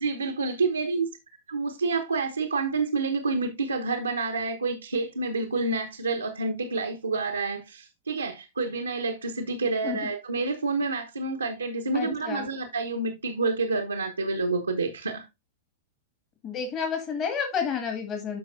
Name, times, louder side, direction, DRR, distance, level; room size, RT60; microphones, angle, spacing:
voice 1, 0.0-1.1 1.5-15.2, right 3 dB, 80° right, 1.0 m, -28 dB
voice 2, 11.9-12.5 16.4-18.4, left 6 dB, 30° left, 1.9 m, -30 dB
12.5 x 5.1 x 2.6 m
figure-of-eight pair, 100°, 0 cm